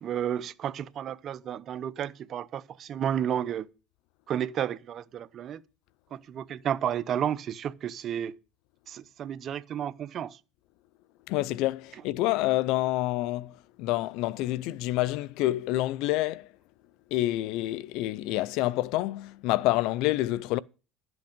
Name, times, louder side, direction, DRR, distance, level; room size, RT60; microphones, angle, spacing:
voice 1, 0.0-3.6 4.3-5.6 6.1-8.3 8.9-10.4, right 9 dB, 45° right, 0.7 m, -32 dB
voice 2, 11.3-16.5 17.1-20.6, left 16 dB, 70° left, 0.5 m, -28 dB
12.0 x 8.0 x 5.2 m
supercardioid pair, 105°, 0 cm